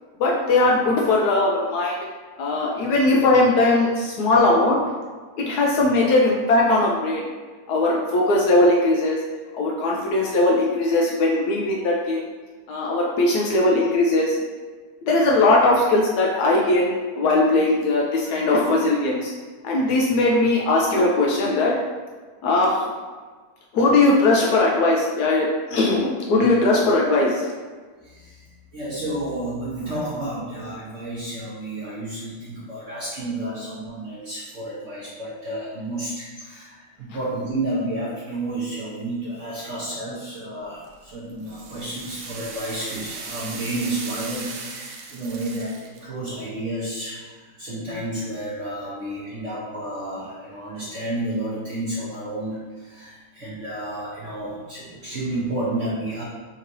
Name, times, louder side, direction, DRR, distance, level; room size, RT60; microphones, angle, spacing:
voice 1, 0.2-1.9 2.4-4.8 5.4-7.3 7.7-9.2 9.5-12.2 12.7-14.4 15.0-19.3 19.6-21.7 22.4-22.9 23.7-27.5, left 2 dB, 85° left, -2 dB, 0.8 m, -19 dB
voice 2, 28.0-28.4 28.7-56.2, right 1 dB, 55° right, -8 dB, 0.8 m, -31 dB
sound 1, 40.8-46.0, right 4 dB, 80° right, 1.5 m, -37 dB
5.5 x 2.9 x 2.6 m, 1.4 s
omnidirectional pair, 2.3 m